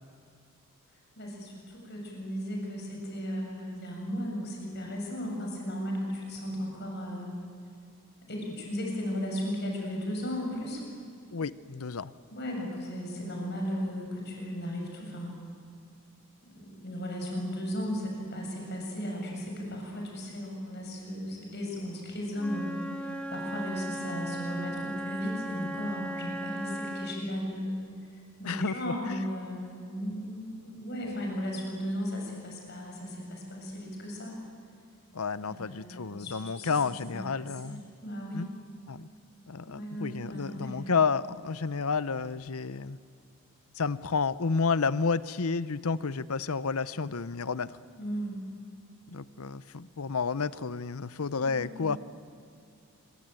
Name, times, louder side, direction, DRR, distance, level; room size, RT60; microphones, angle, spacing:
voice 1, 1.2-7.3 8.2-10.8 12.3-15.4 16.4-27.8 28.1-34.4 35.4-38.4 39.6-41.0 47.9-48.4 51.4-52.0, equal, 50° left, 0 dB, 7.3 m, -36 dB
voice 2, 11.3-12.1 28.4-28.9 35.1-37.8 38.3-38.5 38.9-39.1 39.5-43.0 43.7-47.7 49.1-52.0, left 5 dB, 80° left, 16 dB, 0.8 m, -30 dB
Wind instrument woodwind instrument, 22.4-27.3, right 1 dB, 5° left, 1.5 m, -37 dB
26.5 x 23.5 x 9.1 m, 2.4 s
head